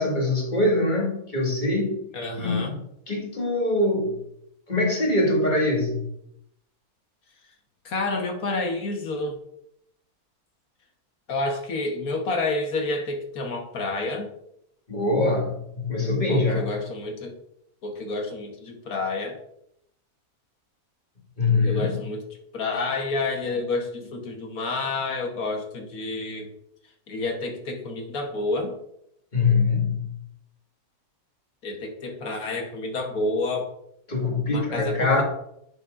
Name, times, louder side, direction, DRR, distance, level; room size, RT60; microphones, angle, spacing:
voice 1, 0.0-2.0 2.4-2.8 3.1-4.2 4.7-6.1 14.9-16.7 21.4-21.9 29.3-30.2 34.1-35.2, left 2 dB, 30° left, -1 dB, 1.9 m, -23 dB
voice 2, 2.1-2.8 7.8-9.4 11.3-14.3 16.3-17.3 17.8-19.4 21.6-22.2 22.5-26.5 27.1-28.8 31.6-33.7 34.5-35.2, left 2 dB, 70° left, 3 dB, 1.7 m, -29 dB
9.7 x 7.0 x 2.5 m, 0.76 s
omnidirectional pair, 1.6 m